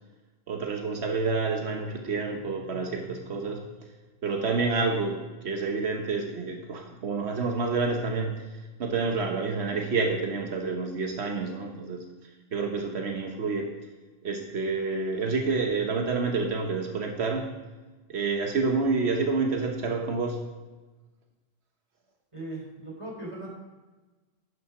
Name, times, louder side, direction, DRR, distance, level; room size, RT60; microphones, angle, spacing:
voice 1, 0.5-3.7 4.2-12.1 12.5-13.7 14.2-17.5 18.1-20.4, right 4 dB, 85° right, 2 dB, 1.3 m, -28 dB
voice 2, 22.3-23.5, right 2 dB, 30° right, -2 dB, 3.4 m, -38 dB
11.0 x 6.7 x 6.0 m, 1.2 s
omnidirectional pair, 1.1 m